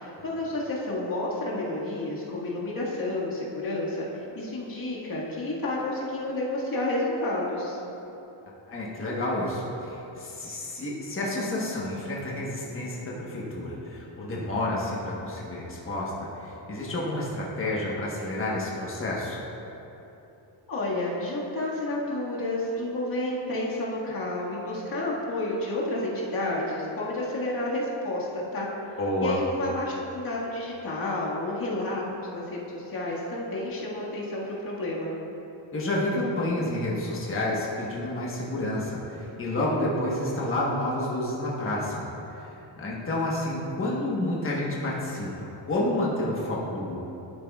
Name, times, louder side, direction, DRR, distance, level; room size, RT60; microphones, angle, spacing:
voice 1, 0.0-7.8 20.7-28.7 29.2-35.1, left 1 dB, 45° left, -6 dB, 1.9 m, -30 dB
voice 2, 8.7-19.4 29.0-29.4 35.7-42.1 42.3-47.0, left 1 dB, 25° left, -4 dB, 1.2 m, -30 dB
11.5 x 9.4 x 2.4 m, 3.0 s
wide cardioid pair, 170°, 48 cm